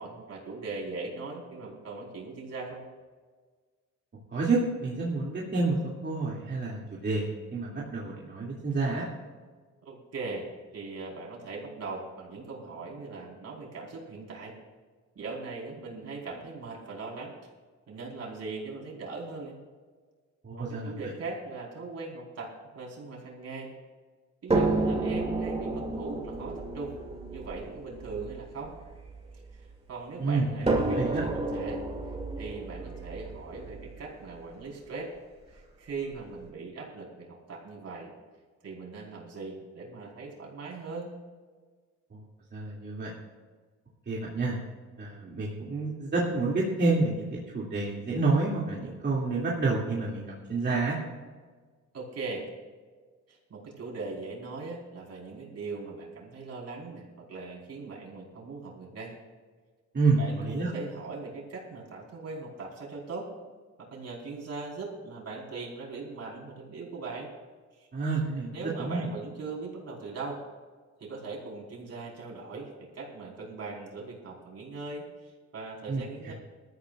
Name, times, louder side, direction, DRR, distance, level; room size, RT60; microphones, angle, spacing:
voice 1, 0.0-2.8 9.8-14.5 15.1-17.3 17.9-19.6 20.6-23.7 24.4-26.9 27.3-28.7 29.5-29.6 29.9-31.8 32.4-35.1 35.5-38.1 38.6-41.1 51.9-52.4 53.3-59.1 60.2-63.3 63.8-67.3 67.8-67.9 68.5-70.4 71.0-76.3, right 3 dB, 55° right, -2 dB, 4.6 m, -40 dB
voice 2, 4.3-9.0 20.4-20.9 30.2-31.2 42.1-42.2 42.5-43.1 44.1-44.6 45.0-51.0 59.9-60.7 67.9-68.5 68.8-69.1 75.9-76.3, right 3 dB, 35° right, -5 dB, 2.6 m, -29 dB
sound 1, 24.5-29.7 30.7-34.6 35.6-35.7 36.1-36.2, right 2 dB, 20° right, 2.6 m, -31 dB
20.0 x 13.5 x 2.5 m, 1.5 s
cardioid pair, 90°, 30 cm